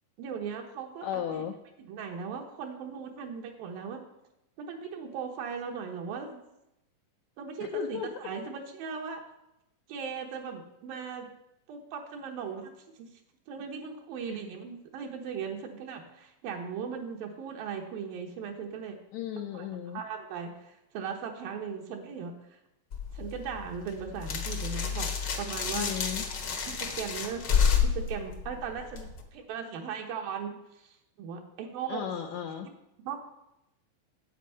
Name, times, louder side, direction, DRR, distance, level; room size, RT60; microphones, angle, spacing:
voice 1, 0.2-1.1 1.3-1.4 1.8-4.0 4.6-6.4 7.4-9.2 9.9-11.3 11.7-12.7 13.0-13.1 13.5-19.0 19.5-19.7 19.9-22.6 23.1-25.1 25.4-25.9 26.7-27.4 27.8-32.1 33.0-33.2, right 6 dB, 80° right, 1 dB, 2.8 m, -38 dB
voice 2, 1.0-1.6 7.6-8.1 14.2-14.4 19.1-20.0 25.7-26.3 31.9-32.7, left 8 dB, 80° left, 5 dB, 1.6 m, -35 dB
sound 1, 22.9-29.2, left 7 dB, 60° left, 1.1 m, -30 dB
10.0 x 8.3 x 5.6 m, 0.86 s
omnidirectional pair, 4.1 m